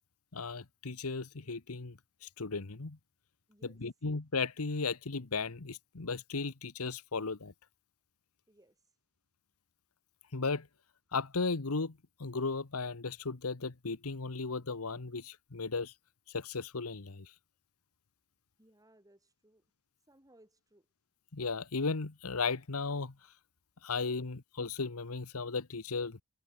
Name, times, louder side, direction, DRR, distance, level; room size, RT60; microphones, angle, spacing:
voice 1, 0.3-3.0 3.8-7.5 10.3-10.7 11.1-15.9 16.3-17.3 21.3-23.1 23.8-26.2, left 4 dB, 85° left, 1.2 m, -36 dB
voice 2, 3.5-3.8 8.5-8.8 18.6-19.6 20.1-20.9, right 1 dB, 15° right, 6.4 m, -63 dB
head